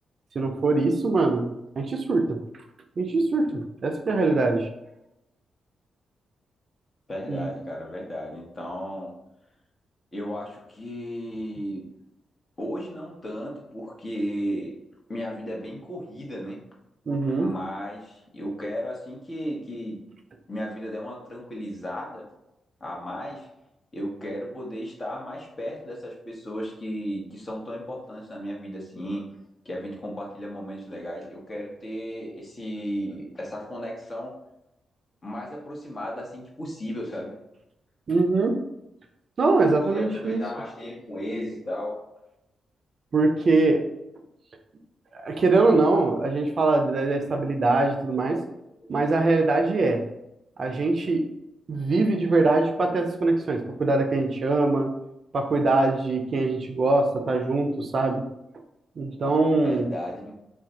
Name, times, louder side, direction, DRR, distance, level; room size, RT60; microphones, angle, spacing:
voice 1, 0.3-2.4 3.0-4.7 7.3-7.5 17.1-17.5 38.1-38.6 39.4-40.4 43.1-43.8 45.1-48.4 48.9-50.0 50.6-51.2 51.7-54.9 55.3-58.2 59.0-59.9, right 3 dB, 55° right, 4 dB, 0.5 m, -23 dB
voice 2, 7.1-9.1 10.1-11.8 12.6-14.8 15.1-16.6 17.4-20.0 20.5-22.3 22.8-23.5 23.9-29.3 29.6-34.4 35.2-37.3 39.8-42.0 48.3-48.4 59.5-60.3, equal, 40° left, -2 dB, 1.0 m, -34 dB
2.5 x 2.2 x 3.9 m, 0.87 s
hypercardioid pair, 40°, 0 cm